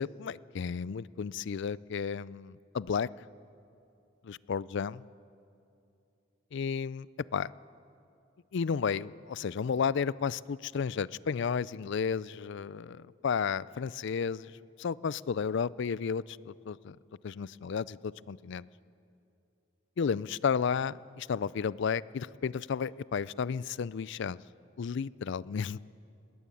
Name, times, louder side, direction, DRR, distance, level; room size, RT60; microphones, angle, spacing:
voice 1, 0.0-3.1 4.2-5.0 6.5-7.1 7.3-7.5 8.5-14.5 14.8-17.0 17.2-18.7 20.0-24.4 24.8-25.8, left 6 dB, 60° left, 21 dB, 0.4 m, -32 dB
20.5 x 18.5 x 8.5 m, 2.7 s
head